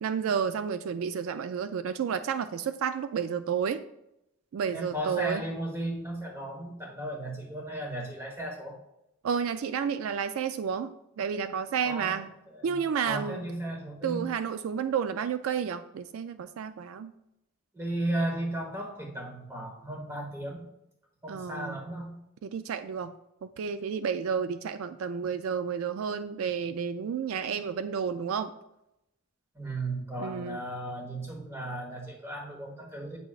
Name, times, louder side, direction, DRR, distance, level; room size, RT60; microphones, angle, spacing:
voice 1, 0.0-3.8 4.5-5.4 9.2-12.3 12.6-13.4 14.0-17.1 21.3-21.8 22.4-23.1 23.4-28.5 30.2-30.6, right 7 dB, 75° right, 11 dB, 0.3 m, -31 dB
voice 2, 4.7-8.8 11.8-14.3 17.7-20.7 21.2-22.1 29.5-33.2, right 1 dB, 15° right, 0 dB, 1.3 m, -35 dB
8.6 x 5.9 x 2.4 m, 0.85 s
head